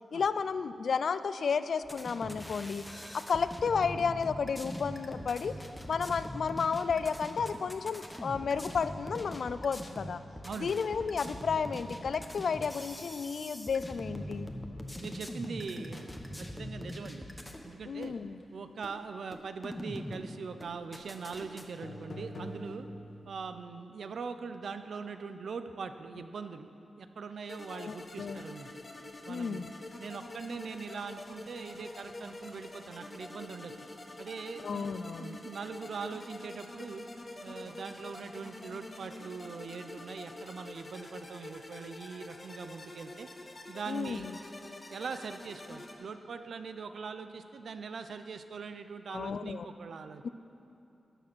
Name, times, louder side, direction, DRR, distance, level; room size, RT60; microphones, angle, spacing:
voice 1, 0.1-2.8 3.1-5.6 5.9-10.2 10.6-14.5 17.9-18.4 27.7-28.4 29.3-29.7 34.6-35.4 43.9-44.3 49.1-49.7 50.2-50.3, left 5 dB, 70° left, 13 dB, 0.4 m, -32 dB
sound 1, 1.8-17.6 18.0-18.1 18.8-18.9 19.3-20.2 20.6-21.6, equal, 10° left, 1.0 m, -42 dB
voice 2, 10.4-10.8 15.0-17.3 17.6-18.1 18.5-22.9 23.3-26.7 27.0-28.7 29.2-29.7 30.0-33.9 34.2-37.0 37.4-43.3 43.7-44.3 44.9-50.2, right 5 dB, 75° right, 9 dB, 0.6 m, -42 dB
sound 2, 21.3-21.4 21.8-23.4, left 1 dB, 55° left, 1.2 m, -44 dB
sound 3, 27.5-45.9, left 2 dB, 35° left, 1.2 m, -47 dB
13.0 x 7.5 x 6.1 m, 2.9 s
wide cardioid pair, 95°, 0 cm